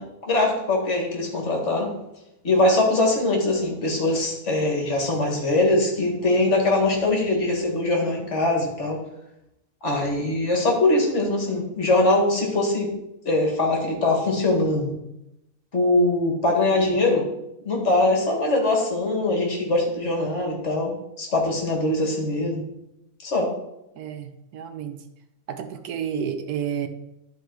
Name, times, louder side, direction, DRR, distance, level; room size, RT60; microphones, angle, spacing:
voice 1, 0.0-1.9 2.4-9.0 9.8-12.9 13.3-14.9 15.7-17.3 17.6-22.6 23.2-23.5, left 2 dB, 50° left, 0 dB, 2.1 m, -22 dB
voice 2, 16.7-17.0 24.0-25.0 25.5-26.9, right 8 dB, 85° right, 8 dB, 1.3 m, -31 dB
11.5 x 4.4 x 4.6 m, 0.85 s
omnidirectional pair, 1.6 m